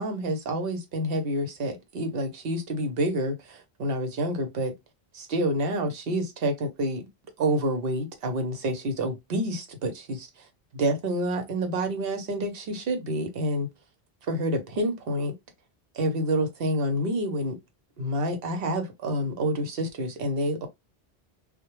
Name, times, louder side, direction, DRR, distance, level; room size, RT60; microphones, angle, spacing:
voice 1, 0.0-4.7 5.1-7.1 7.4-10.3 10.7-13.7 14.3-15.3 15.9-17.6 18.0-20.7, right 1 dB, 65° right, 0.9 m, -28 dB
2.1 x 2.1 x 2.9 m
omnidirectional pair, 1.1 m